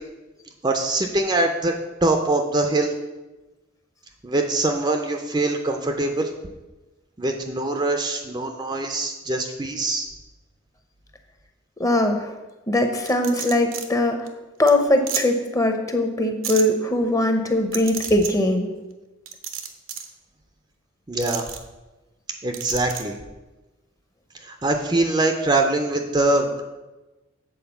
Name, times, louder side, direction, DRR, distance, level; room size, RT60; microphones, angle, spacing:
voice 1, 0.6-1.7 2.0-2.9 4.2-6.3 7.2-10.1 21.1-21.5 22.4-23.1 24.4-26.6, right 2 dB, 20° right, 4 dB, 0.5 m, -23 dB
voice 2, 11.8-12.3 12.7-14.3 14.6-18.7, left 1 dB, 15° left, 5 dB, 0.7 m, -21 dB
sound 1, 13.1-13.9 14.3-14.4 14.7-14.8 15.1-15.2 16.4-16.6 17.7-18.3 19.3-20.1 21.2-21.6 22.5-23.0, right 8 dB, 75° right, 0.9 m, -31 dB
7.9 x 4.5 x 6.9 m, 1.1 s
head